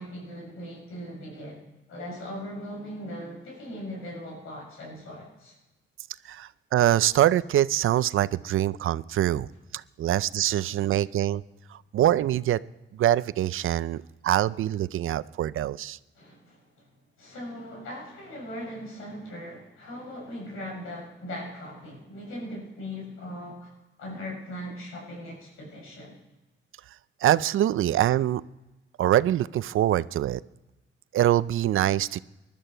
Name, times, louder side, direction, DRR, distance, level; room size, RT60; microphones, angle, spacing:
voice 1, 0.0-1.6 1.9-5.5 10.6-10.9 16.1-16.9 17.2-23.7 24.0-26.2, equal, 90° left, -2 dB, 7.2 m, -39 dB
voice 2, 6.3-9.5 9.7-11.4 11.7-12.6 12.9-16.0 27.2-28.4 29.0-30.4 31.1-32.2, right 12 dB, 75° right, 18 dB, 0.5 m, -24 dB
20.5 x 12.5 x 4.6 m, 1.0 s
cardioid pair, 75°, 21 cm